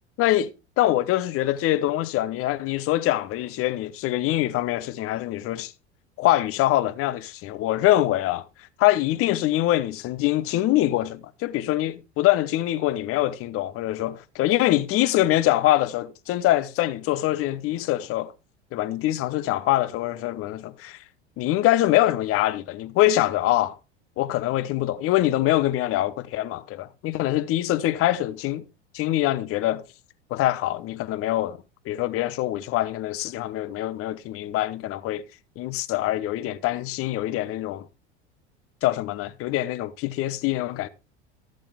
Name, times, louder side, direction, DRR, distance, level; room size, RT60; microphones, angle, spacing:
voice 1, 0.2-0.5 0.8-5.7 6.2-8.4 8.8-18.3 18.7-21.0 21.4-23.8 24.2-28.6 28.9-29.8 30.3-31.6 31.9-35.2 35.6-37.9 38.8-40.9, left 15 dB, 40° left, 0.9 m, -24 dB
13.5 x 7.7 x 3.6 m
figure-of-eight pair, 75°, 34 cm